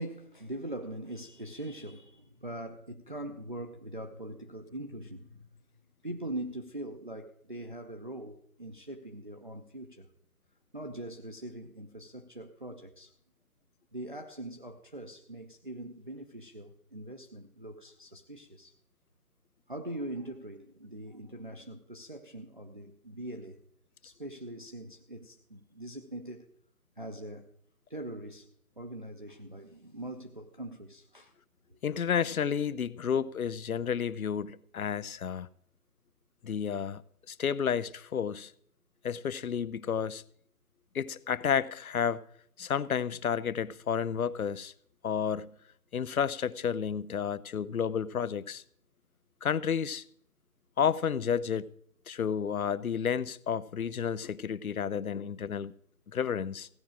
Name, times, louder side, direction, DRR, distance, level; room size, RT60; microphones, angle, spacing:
voice 1, 0.0-5.5 6.0-10.1 10.7-13.1 13.9-18.8 19.7-23.6 24.0-26.5 27.0-27.5 27.9-31.3 31.7-31.8, right 1 dB, 35° right, 0.6 m, -42 dB
voice 2, 31.8-35.5 36.4-37.0 37.3-38.5 39.0-40.2 40.9-42.2 42.6-44.7 45.0-45.5 45.9-48.6 49.4-50.0 50.8-51.7 52.1-55.7 56.1-56.7, left 7 dB, 65° left, 0.7 m, -31 dB
16.0 x 6.0 x 8.8 m
hypercardioid pair, 170°, 46 cm